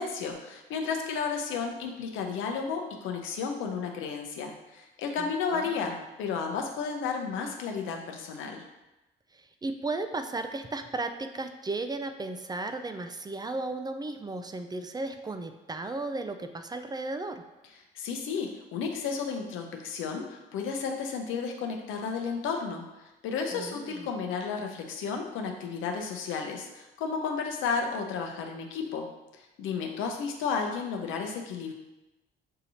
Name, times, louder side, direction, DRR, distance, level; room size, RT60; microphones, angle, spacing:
voice 1, 0.0-8.6 17.9-22.8 23.2-29.1 29.3-31.7, left 5 dB, 90° left, 3 dB, 0.7 m, -33 dB
voice 2, 5.2-6.0 9.3-17.4 23.5-24.1, right 2 dB, 20° right, 7 dB, 0.3 m, -35 dB
6.5 x 2.8 x 2.7 m, 1.0 s
cardioid pair, 90°, 20 cm